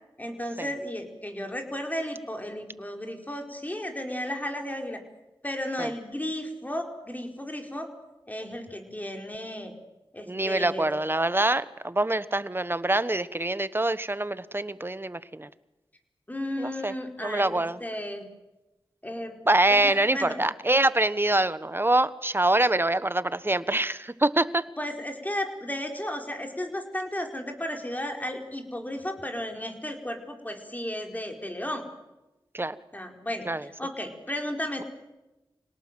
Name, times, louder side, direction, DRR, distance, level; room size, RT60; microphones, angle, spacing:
voice 1, 0.2-5.0 5.4-7.9 8.3-9.7 10.1-10.9 16.3-18.2 19.0-19.3 19.7-20.4 24.8-31.8 32.9-34.8, left 1 dB, 20° left, 3 dB, 4.8 m, -34 dB
voice 2, 10.3-15.5 16.6-16.9 17.2-17.8 19.5-24.6 32.5-32.7 33.4-33.7, right 2 dB, 25° right, 15 dB, 1.2 m, -25 dB
26.5 x 18.5 x 7.7 m, 1.0 s
cardioid pair, 50°, 9 cm